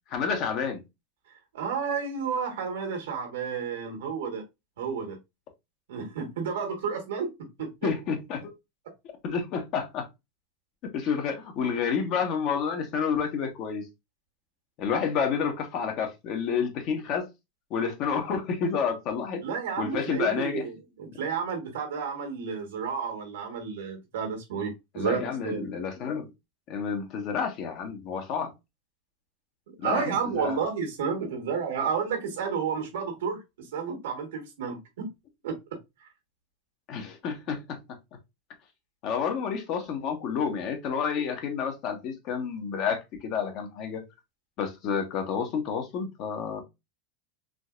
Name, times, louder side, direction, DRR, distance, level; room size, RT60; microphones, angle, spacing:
voice 1, 0.1-0.8 7.8-8.5 9.2-10.1 10.8-13.9 14.8-17.3 17.7-19.4 19.8-20.7 24.9-26.3 26.7-28.5 29.8-30.6 36.9-37.8 39.0-44.0 44.6-46.6, left 6 dB, 50° left, 1.1 m, -29 dB
voice 2, 1.5-4.4 4.8-5.2 5.9-7.9 19.4-25.7 29.8-35.1 35.4-35.8, right 6 dB, 85° right, 1.4 m, -31 dB
3.8 x 2.8 x 2.4 m
supercardioid pair, 120°, 0 cm